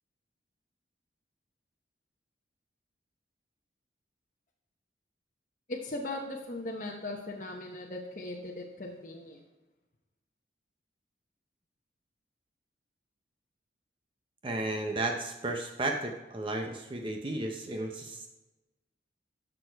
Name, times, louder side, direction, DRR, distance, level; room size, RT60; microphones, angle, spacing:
voice 1, 5.7-9.4, left 2 dB, 45° left, -1 dB, 0.9 m, -38 dB
voice 2, 14.4-18.3, right 2 dB, 30° right, 3 dB, 0.6 m, -33 dB
10.5 x 6.7 x 4.5 m, 1.1 s
head